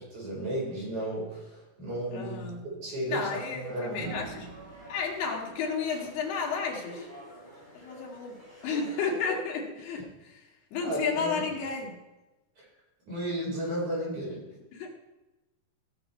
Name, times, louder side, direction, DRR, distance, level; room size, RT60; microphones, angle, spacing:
voice 1, 0.1-2.5 2.8-4.1 10.8-11.4 13.1-14.4, right 1 dB, 45° right, -4 dB, 5.9 m, -33 dB
voice 2, 2.1-2.7 3.1-4.5 4.9-7.1 7.7-10.4 10.7-12.0 14.7-14.9, left 5 dB, 85° left, 0 dB, 3.8 m, -32 dB
sound 1, 2.4-2.5 3.9-6.9 8.5-8.8, right 7 dB, 80° right, 3.0 m, -46 dB
sound 2, 3.2-9.0, equal, 10° right, 4.3 m, -49 dB
17.0 x 7.1 x 4.4 m, 1.0 s
omnidirectional pair, 4.5 m